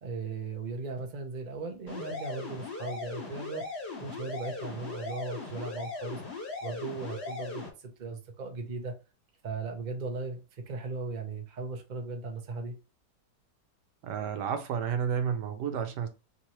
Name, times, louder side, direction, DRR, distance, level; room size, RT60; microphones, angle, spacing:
voice 1, 0.0-3.6 4.0-6.2 6.6-8.9 9.4-12.7, right 3 dB, 35° right, 0.7 m, -37 dB
sound 1, 1.9-7.7, left 3 dB, 40° left, 2.1 m, -38 dB
voice 2, 14.0-16.1, right 7 dB, 80° right, 1.4 m, -31 dB
4.3 x 3.7 x 3.0 m
omnidirectional pair, 1.8 m